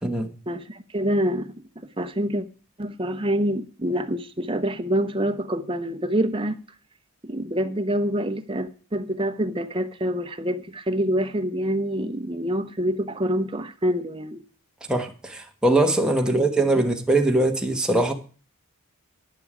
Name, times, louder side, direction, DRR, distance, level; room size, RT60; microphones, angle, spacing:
voice 1, 0.5-1.5 2.0-2.4 2.8-6.6 7.2-14.4 16.3-16.4, equal, 25° right, 0.9 m, -26 dB
voice 2, 14.9-18.1, right 2 dB, 5° right, 1.2 m, -21 dB
10.5 x 9.7 x 5.0 m
head